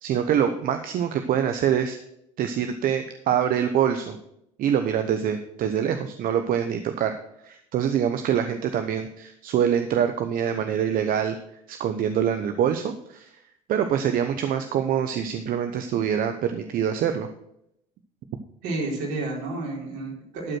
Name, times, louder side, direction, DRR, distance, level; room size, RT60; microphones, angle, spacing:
voice 1, 0.0-2.0 2.4-4.2 4.6-7.2 7.4-11.4 11.7-13.3 13.7-17.3, right 9 dB, 55° right, 7 dB, 0.9 m, -25 dB
voice 2, 18.6-20.6, right 2 dB, 75° right, -2 dB, 4.2 m, -30 dB
12.5 x 5.0 x 6.2 m, 0.76 s
supercardioid pair, 80°, 17 cm